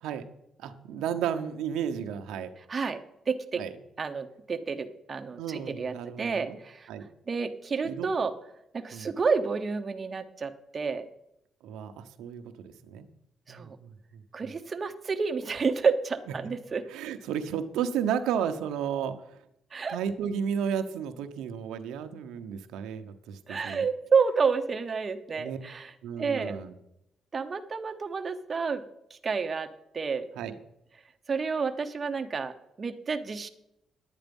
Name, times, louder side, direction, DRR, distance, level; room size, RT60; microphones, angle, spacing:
voice 1, 0.6-2.5 3.6-3.7 5.4-6.6 6.9-7.1 7.8-8.1 8.9-9.1 11.6-13.1 13.5-14.5 16.9-19.4 19.9-23.8 25.4-25.6 26.0-26.8 30.4-30.5, right 8 dB, 90° right, 8 dB, 0.9 m, -33 dB
voice 2, 2.7-3.6 4.0-6.9 7.3-8.3 8.7-11.1 13.5-13.8 14.3-16.8 19.7-20.0 23.5-25.9 26.2-26.6 27.3-28.8 29.2-30.3 31.3-33.5, right 5 dB, 35° right, 7 dB, 1.0 m, -30 dB
11.0 x 9.2 x 5.3 m, 0.82 s
cardioid pair, 90°, 0 cm